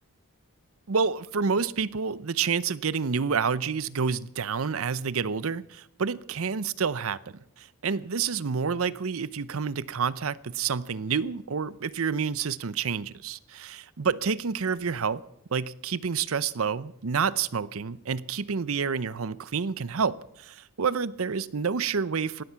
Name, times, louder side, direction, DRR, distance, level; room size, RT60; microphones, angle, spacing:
voice 1, 0.9-7.2 7.6-15.2 15.5-22.4, right 6 dB, 70° right, 0.7 m, -28 dB
18.0 x 13.5 x 5.8 m
head